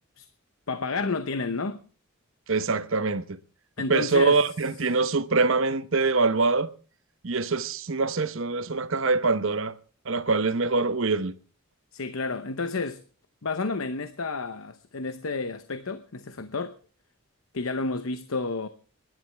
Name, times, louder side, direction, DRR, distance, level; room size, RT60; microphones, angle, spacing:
voice 1, 0.7-1.8 3.8-4.4 11.9-13.0 13.4-16.7 17.5-18.7, left 3 dB, 75° left, 0.8 m, -30 dB
voice 2, 2.5-3.4 3.9-6.7 7.2-9.8 10.0-11.3, right 3 dB, 65° right, 1.0 m, -24 dB
27.0 x 11.0 x 3.4 m
head